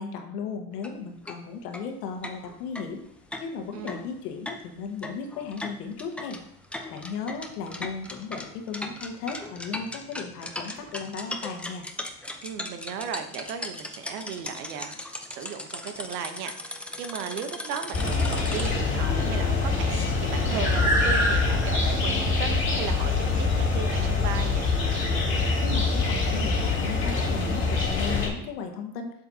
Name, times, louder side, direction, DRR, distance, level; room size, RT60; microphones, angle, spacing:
voice 1, 0.0-3.0 3.4-6.4 6.9-11.9 25.6-29.1, left 5 dB, 85° left, 4 dB, 1.5 m, -36 dB
sound 1, 0.7-0.9 1.3-1.4 1.7-1.8 2.2-18.7, left 1 dB, 5° left, 0.6 m, -38 dB
voice 2, 3.7-4.0 12.4-15.0 15.3-24.7, right 7 dB, 80° right, 8 dB, 1.0 m, -36 dB
sound 2, 17.9-28.3, left 3 dB, 25° left, 2.5 m, -24 dB
7.5 x 7.2 x 2.8 m, 0.75 s
supercardioid pair, 105°, 46 cm